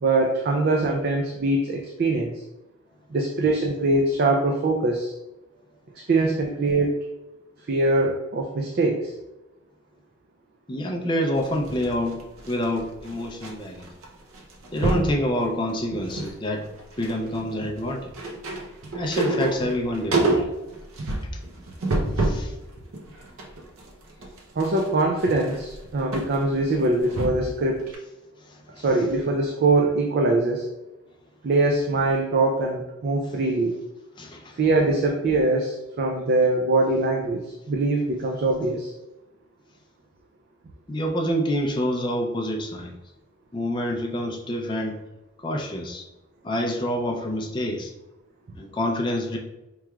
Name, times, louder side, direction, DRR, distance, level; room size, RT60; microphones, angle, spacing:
voice 1, 0.0-2.4 3.1-5.1 6.1-7.0 7.7-9.1 24.6-27.8 28.8-30.7 31.4-33.8 34.6-38.9, right 2 dB, 45° right, 1 dB, 0.3 m, -23 dB
voice 2, 10.7-12.2 12.5-13.9 14.7-16.6 17.0-18.1 18.9-20.4 22.2-22.5 34.2-34.4 40.9-42.9 43.5-45.0 45.4-46.0 46.4-47.9 48.6-49.4, equal, 20° left, 1 dB, 0.4 m, -27 dB
sound 1, 11.4-13.5 13.8-14.1 14.3-15.2 15.7-16.4 16.6-22.5 22.9-27.6 27.9-28.0, right 2 dB, 85° right, 0.7 m, -28 dB
4.6 x 3.1 x 2.3 m, 0.99 s
head